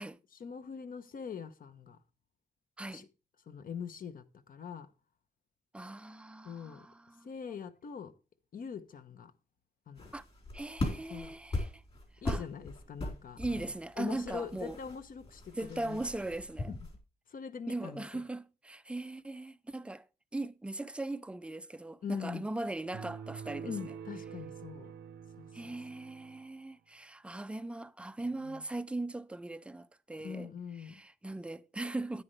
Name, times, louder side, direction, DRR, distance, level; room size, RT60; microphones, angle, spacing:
voice 1, 0.3-2.0 2.9-3.1 3.5-4.9 6.4-6.9 7.2-8.1 8.5-9.3 9.9-10.1 11.1-11.3 12.2-16.0 16.7-16.9 17.3-18.2 22.0-22.4 23.6-24.9 25.4-25.7 28.3-28.7 30.2-31.0, left 7 dB, 55° left, 1.0 m, -43 dB
voice 2, 5.7-7.3 10.1-10.2 10.5-11.7 12.2-12.4 13.4-14.8 15.5-16.8 17.7-20.1 20.3-23.7 25.5-30.5 30.9-32.2, right 2 dB, 5° right, 0.4 m, -39 dB
sound 1, 10.0-17.0, left 2 dB, 35° left, 3.8 m, -40 dB
sound 2, 22.9-26.5, right 7 dB, 85° right, 0.8 m, -46 dB
10.0 x 9.5 x 3.2 m
wide cardioid pair, 130°, 18 cm